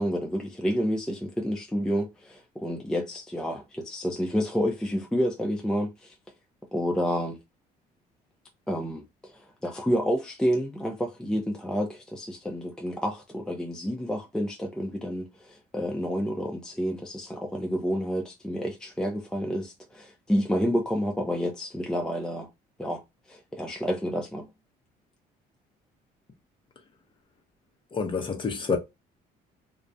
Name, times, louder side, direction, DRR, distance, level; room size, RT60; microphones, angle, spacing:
voice 1, 0.0-6.1 6.7-7.4 8.7-22.5 22.8-23.0 23.3-24.5, equal, 5° left, 0.4 m, -29 dB
voice 2, 27.9-28.8, left 5 dB, 30° left, 0.7 m, -28 dB
2.4 x 2.0 x 2.6 m
cardioid pair, 110°, 17 cm